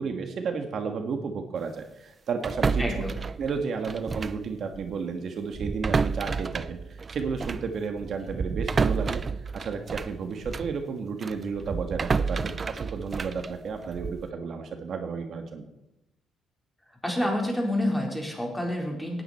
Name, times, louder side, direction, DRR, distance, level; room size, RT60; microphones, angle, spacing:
voice 1, 0.0-2.8 3.4-9.2 9.5-15.7, right 5 dB, 60° right, 5 dB, 1.7 m, -32 dB
sound 1, 2.4-4.5 4.7-4.9 5.5-10.8 11.2-14.3, right 5 dB, 35° right, 0.5 m, -30 dB
voice 2, 2.8-3.1 17.0-19.2, left 1 dB, 10° left, 0 dB, 4.4 m, -28 dB
18.0 x 9.7 x 4.4 m, 0.90 s
cardioid pair, 90°, 0 cm